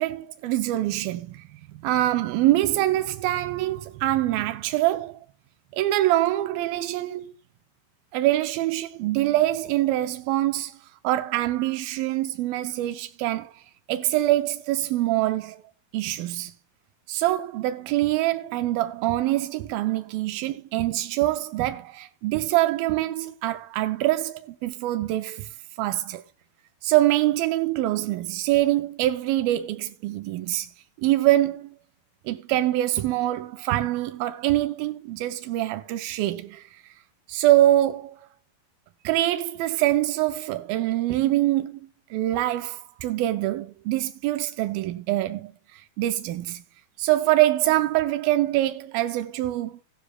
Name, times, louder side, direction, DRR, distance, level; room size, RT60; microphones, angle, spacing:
voice 1, 0.0-1.4 1.7-5.2 5.7-7.3 8.1-10.8 11.0-13.5 13.9-15.6 15.9-16.5 17.1-25.5 25.8-26.2 26.8-30.7 31.0-31.7 32.3-36.6 37.3-38.2 39.0-41.8 42.1-46.6 47.0-49.8, right 15 dB, 85° right, 2.5 m, -24 dB
15.0 x 12.0 x 2.3 m
omnidirectional pair, 4.1 m